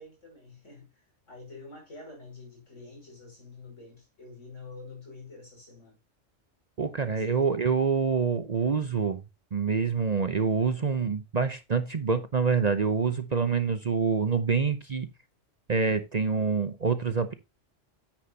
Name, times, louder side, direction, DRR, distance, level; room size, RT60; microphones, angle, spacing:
voice 1, 0.0-6.0 7.1-7.3, left 3 dB, 80° left, 6.1 m, -47 dB
voice 2, 6.8-9.2 9.5-15.1 15.7-17.3, right 5 dB, 40° right, 0.7 m, -26 dB
9.6 x 8.8 x 2.8 m
omnidirectional pair, 1.3 m